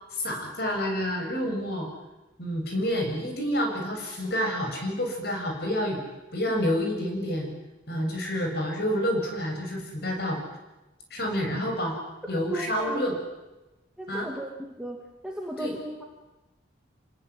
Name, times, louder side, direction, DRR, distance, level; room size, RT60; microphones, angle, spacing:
voice 1, 0.1-1.9 2.4-6.0 6.3-7.5 7.9-10.4 11.1-12.0 12.3-13.2 14.1-14.3 15.6-15.7, equal, 55° left, 2 dB, 7.1 m, -28 dB
voice 2, 12.5-13.1 14.0-15.0 15.2-16.0, equal, 5° right, -1 dB, 2.7 m, -35 dB
28.0 x 19.5 x 9.8 m, 1.0 s
head